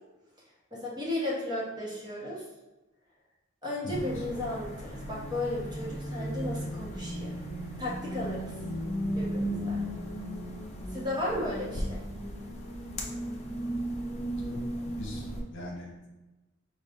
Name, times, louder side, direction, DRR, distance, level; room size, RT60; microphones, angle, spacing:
voice 1, 0.7-2.4 3.6-7.4 7.8-8.5 9.1-9.8 10.9-12.0, left 1 dB, 20° right, -5 dB, 1.1 m, -34 dB
sound 1, 3.9-15.4, equal, 35° left, 0.6 m, -35 dB
voice 2, 14.4-15.2 15.5-16.1, left 1 dB, 65° left, -2 dB, 1.0 m, -41 dB
5.0 x 2.4 x 3.6 m, 1.1 s
head